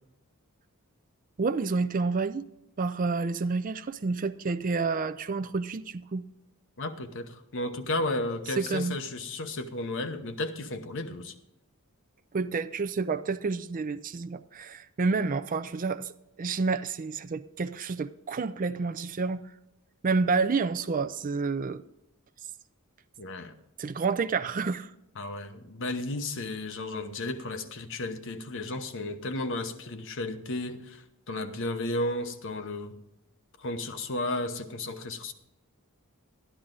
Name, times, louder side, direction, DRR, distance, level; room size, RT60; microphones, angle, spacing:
voice 1, 1.4-2.4 2.8-6.2 8.6-9.0 12.3-16.1 16.4-19.4 20.0-21.8 23.8-24.9, right 4 dB, 35° right, 0.4 m, -29 dB
voice 2, 6.8-11.3 23.2-23.5 25.2-33.0 33.6-35.3, left 2 dB, 60° left, 0.9 m, -33 dB
12.0 x 11.0 x 3.8 m
head